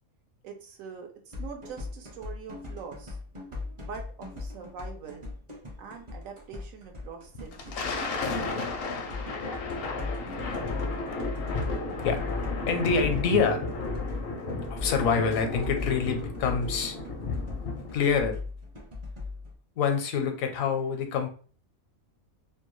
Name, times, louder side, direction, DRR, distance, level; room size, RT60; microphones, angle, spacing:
voice 1, 0.4-3.2 3.8-5.3 5.8-8.1, right 6 dB, 85° right, 3 dB, 1.1 m, -43 dB
sound 1, 1.3-19.5, left 3 dB, 35° right, 0.5 m, -38 dB
Thunder, 7.4-18.1, left 3 dB, 65° left, 0.6 m, -33 dB
voice 2, 10.5-10.9 12.0-12.2 12.7-13.7 14.7-17.0 17.9-18.4 19.8-21.3, left 5 dB, 80° left, 6 dB, 1.0 m, -26 dB
2.8 x 2.2 x 3.0 m, 0.41 s
omnidirectional pair, 1.4 m